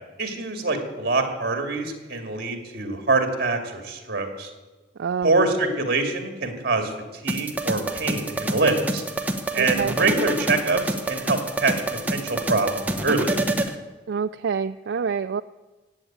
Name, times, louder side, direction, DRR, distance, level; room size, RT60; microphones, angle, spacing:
voice 1, 0.2-4.5 5.2-6.9 7.2-9.0 9.5-11.7 12.1-13.4, right 3 dB, 50° right, 5 dB, 2.4 m, -24 dB
voice 2, 5.0-5.3 9.5-10.0 14.1-15.4, right 6 dB, 70° right, 9 dB, 0.4 m, -27 dB
sound 1, 7.3-13.7, right 1 dB, 10° right, 1.0 m, -27 dB
17.0 x 8.0 x 8.7 m, 1.2 s
head